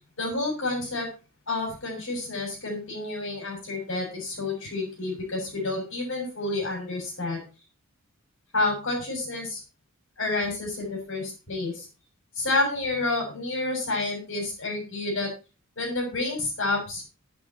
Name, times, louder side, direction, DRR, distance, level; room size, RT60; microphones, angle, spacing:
voice 1, 0.2-1.1 1.5-7.4 8.5-9.6 10.2-11.9 12.4-15.3 15.8-17.0, left 2 dB, 60° left, 1 dB, 7.0 m, -29 dB
11.0 x 9.0 x 4.6 m, 0.31 s
head